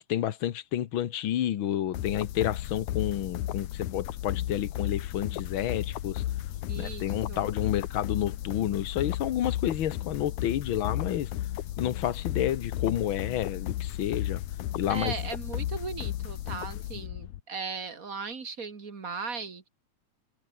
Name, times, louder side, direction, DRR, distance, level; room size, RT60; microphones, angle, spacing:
voice 1, 0.0-6.2 6.8-11.3 11.8-14.4 14.7-15.1 17.0-17.1, left 11 dB, 60° left, 1.4 m, -30 dB
sound 1, 1.9-17.4, left 13 dB, 75° left, 2.5 m, -34 dB
voice 2, 6.7-7.5 14.9-19.7, right 5 dB, 30° right, 2.1 m, -37 dB
omnidirectional pair, 3.6 m